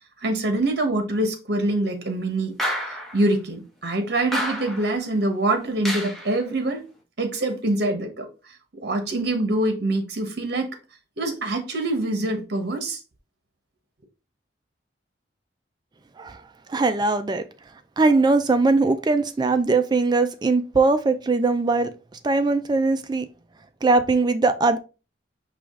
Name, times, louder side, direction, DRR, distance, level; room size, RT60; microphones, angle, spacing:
voice 1, 0.2-2.6 3.1-6.8 7.2-8.3 8.8-10.8 11.2-13.0, right 2 dB, 60° right, 1.1 m, -24 dB
sound 1, 2.6-3.2 4.3-5.0 5.9-6.4, equal, ahead, 1.0 m, -29 dB
voice 2, 16.7-17.4 18.0-21.9 22.2-23.2 23.8-24.8, right 3 dB, 25° right, 0.3 m, -20 dB
4.9 x 3.0 x 3.6 m
head